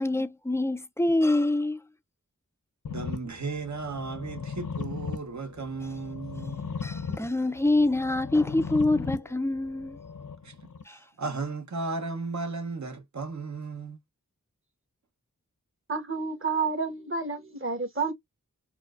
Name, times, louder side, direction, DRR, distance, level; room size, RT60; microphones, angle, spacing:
voice 1, 0.0-1.9 6.8-10.0 10.9-11.0, left 2 dB, 10° left, 0.3 m, -25 dB
sound 1, 2.9-10.8, left 5 dB, 75° left, 0.6 m, -38 dB
voice 2, 2.9-6.6 10.4-10.6 10.9-14.0, right 3 dB, 60° right, 0.8 m, -35 dB
voice 3, 15.9-18.1, right 4 dB, 40° right, 1.1 m, -30 dB
4.4 x 2.1 x 2.4 m
wide cardioid pair, 45°, 32 cm